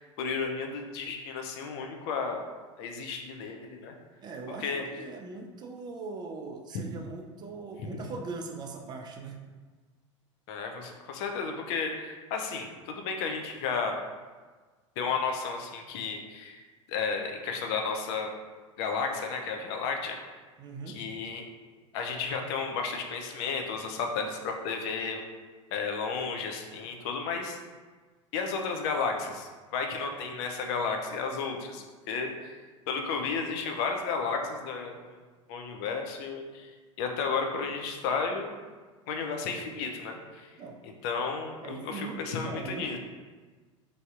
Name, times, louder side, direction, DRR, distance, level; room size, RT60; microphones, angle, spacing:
voice 1, 0.0-2.4 2.8-3.9 4.6-4.8 6.7-6.9 7.8-8.0 10.5-14.0 15.0-16.6 16.9-18.3 18.8-20.2 20.9-21.5 21.9-25.2 25.7-27.6 28.3-32.6 32.9-35.2 35.5-38.5 39.1-40.6 40.8-43.0, left 5 dB, 55° left, 3 dB, 0.5 m, -33 dB
voice 2, 4.2-9.4 20.6-21.0 40.6-40.8 41.6-43.0, right 4 dB, 25° right, 3 dB, 0.4 m, -40 dB
3.3 x 2.6 x 2.4 m, 1.4 s
hypercardioid pair, 85°, 17 cm